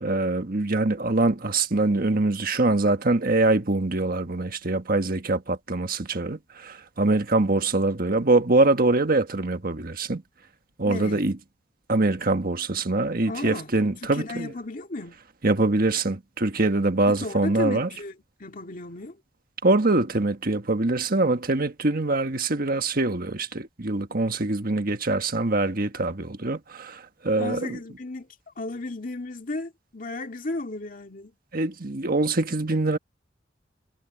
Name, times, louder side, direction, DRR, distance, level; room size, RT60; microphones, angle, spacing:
voice 1, 0.0-10.2 10.8-11.3 11.9-14.5 15.4-17.9 19.6-27.8 31.5-33.0, right 2 dB, 55° right, 1.5 m, -24 dB
voice 2, 10.8-11.2 13.3-13.7 14.0-15.2 17.1-18.1 18.4-19.2 27.4-28.3 28.6-31.3, left 2 dB, 50° left, 2.3 m, -34 dB
head